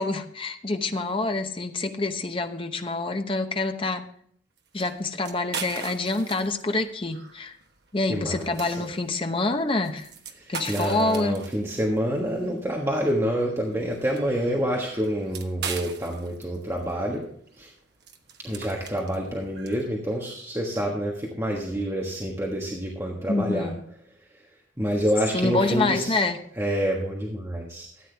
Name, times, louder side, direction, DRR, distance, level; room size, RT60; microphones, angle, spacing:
voice 1, 0.0-4.0 4.7-7.6 7.9-10.1 10.5-11.4 23.3-23.8 25.3-26.4, left 2 dB, 30° left, 6 dB, 0.9 m, -26 dB
sound 1, 4.6-19.9, right 5 dB, 55° right, 1.2 m, -41 dB
voice 2, 8.1-8.7 10.4-17.2 17.6-17.7 18.4-23.7 24.8-26.2 26.6-27.9, equal, 15° right, -2 dB, 1.4 m, -27 dB
14.0 x 8.9 x 3.4 m, 0.64 s
head